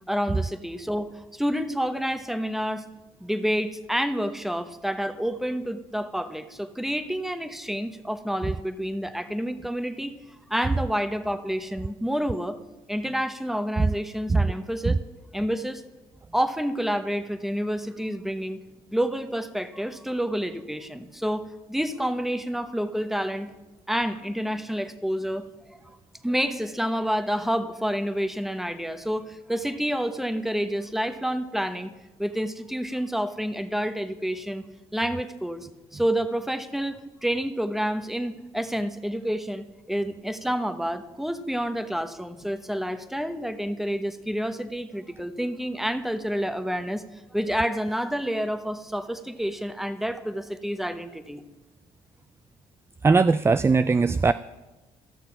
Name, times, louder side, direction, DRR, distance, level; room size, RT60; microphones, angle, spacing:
voice 1, 0.1-2.8 3.2-10.2 10.5-12.6 12.9-15.0 15.3-15.8 16.3-18.6 18.9-23.5 23.9-25.8 26.2-31.9 32.2-34.7 34.9-51.4, equal, ahead, 10 dB, 1.0 m, -29 dB
voice 2, 53.0-54.3, right 4 dB, 20° right, 14 dB, 0.3 m, -20 dB
14.0 x 6.7 x 5.7 m, 1.1 s
supercardioid pair, 65°, 13 cm